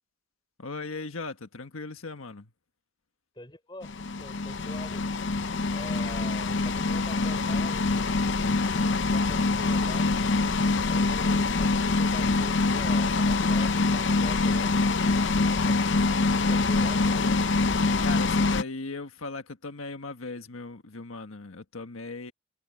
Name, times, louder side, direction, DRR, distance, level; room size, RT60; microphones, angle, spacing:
voice 1, 0.6-2.5 8.8-9.0 10.9-11.2 15.7-17.5 18.0-22.3, left 3 dB, 90° left, 1.5 m, -39 dB
voice 2, 3.3-3.9 4.2-5.1 5.7-7.8 9.0-10.1 10.9-14.8 15.6-15.8 16.4-17.2, left 1 dB, 20° left, 5.0 m, -44 dB
sound 1, 3.8-18.6, left 3 dB, 60° left, 0.7 m, -25 dB
head